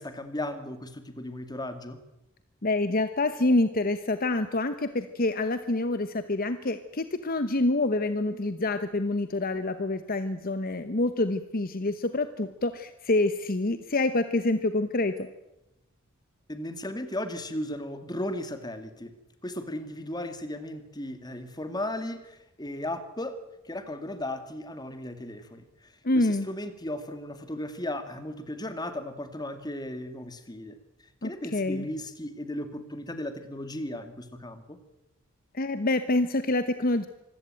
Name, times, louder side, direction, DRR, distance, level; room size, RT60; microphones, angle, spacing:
voice 1, 0.0-2.0 16.5-19.1 19.4-30.8 31.2-34.8, left 1 dB, 20° left, 9 dB, 2.3 m, -36 dB
voice 2, 2.6-15.3 26.0-26.5 31.2-31.8 35.5-37.1, left 2 dB, 45° left, 11 dB, 1.1 m, -27 dB
25.5 x 16.5 x 9.0 m, 0.92 s
head